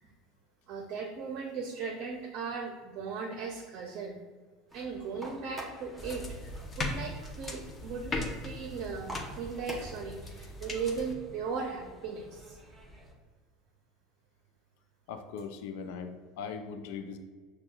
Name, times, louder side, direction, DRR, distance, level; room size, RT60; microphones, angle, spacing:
voice 1, 0.7-4.2 4.7-12.6, right 5 dB, 55° right, 1 dB, 0.6 m, -38 dB
sound 1, 4.7-13.1, equal, 5° right, 1.0 m, -49 dB
sound 2, 6.0-11.1, left 2 dB, 30° left, 0.7 m, -39 dB
voice 2, 15.1-17.2, left 6 dB, 70° left, 7 dB, 0.4 m, -40 dB
5.8 x 2.2 x 2.3 m, 1.4 s
hypercardioid pair, 90°, 0 cm